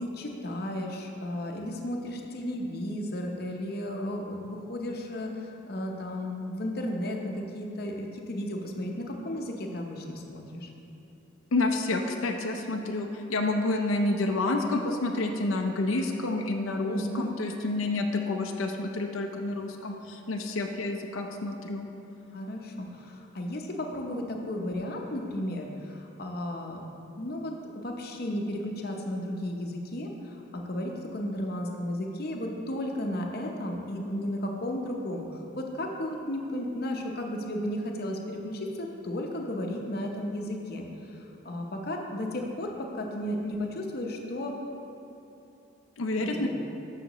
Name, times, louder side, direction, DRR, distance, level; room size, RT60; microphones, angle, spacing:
voice 1, 0.0-10.7 16.9-17.3 22.3-26.8 27.2-44.5 46.2-46.5, left 1 dB, 50° left, 1 dB, 0.7 m, -34 dB
voice 2, 11.5-21.9 46.0-46.5, left 2 dB, 90° left, 2 dB, 0.6 m, -29 dB
13.0 x 5.8 x 3.0 m, 2.9 s
head